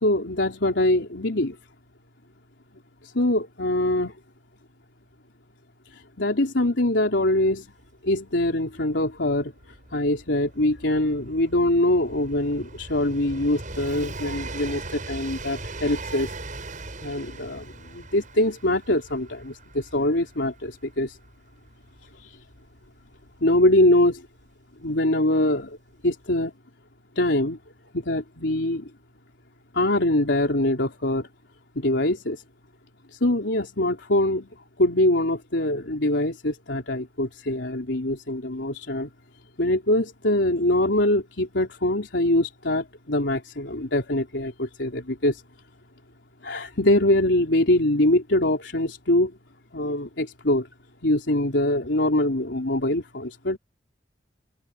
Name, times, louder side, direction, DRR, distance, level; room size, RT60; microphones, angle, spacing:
voice 1, 0.0-1.6 3.0-4.1 5.9-7.7 8.0-9.5 9.9-16.3 17.0-21.2 22.2-22.4 23.4-24.2 24.8-25.8 26.0-26.5 27.2-27.6 27.9-28.9 29.7-31.3 31.8-32.4 33.1-34.5 34.8-39.1 39.6-45.4 46.4-49.4 49.7-50.7 51.0-53.6, left 1 dB, 85° left, 3.5 m, -23 dB
Train, 7.5-7.6 7.8-24.4 25.4-25.5, right 2 dB, 45° right, 8.0 m, -40 dB
open air
head